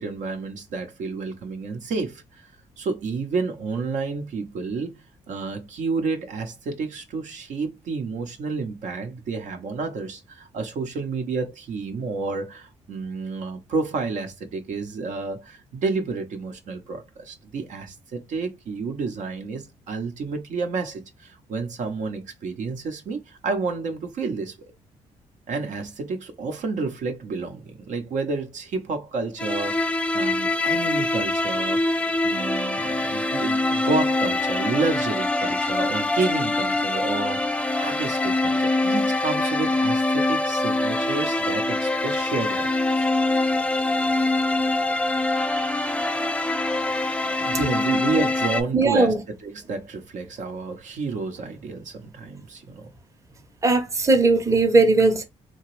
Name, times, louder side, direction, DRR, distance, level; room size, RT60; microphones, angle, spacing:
voice 1, 0.0-2.5 2.8-5.0 5.3-24.6 25.5-31.9 32.2-43.1 44.8-45.2 47.4-49.1 49.4-52.9, right 4 dB, 70° right, 0.7 m, -30 dB
sound 1, 29.4-48.6, left 2 dB, 10° left, 0.4 m, -24 dB
voice 2, 48.7-49.2 53.6-55.2, right 3 dB, 25° right, 0.7 m, -18 dB
2.9 x 2.2 x 3.0 m
cardioid pair, 75°, 13 cm